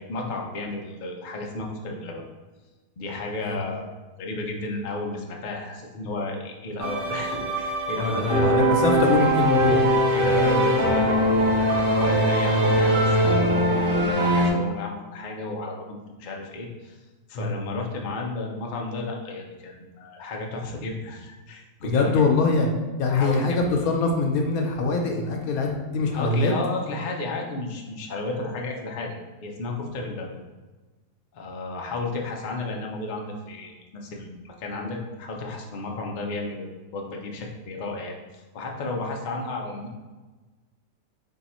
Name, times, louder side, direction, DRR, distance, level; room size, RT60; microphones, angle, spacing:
voice 1, 0.0-2.2 3.0-8.8 10.1-17.0 17.3-22.2 23.1-23.6 26.1-30.4 31.3-40.0, left 2 dB, 60° left, 0 dB, 0.5 m, -33 dB
sound 1, 6.8-14.5, right 1 dB, 45° right, 0.9 m, -21 dB
voice 2, 7.9-9.9 17.3-17.6 21.8-22.7 23.0-26.5, left 3 dB, 75° left, 2 dB, 1.1 m, -23 dB
3.5 x 2.8 x 4.2 m, 1.2 s
omnidirectional pair, 1.5 m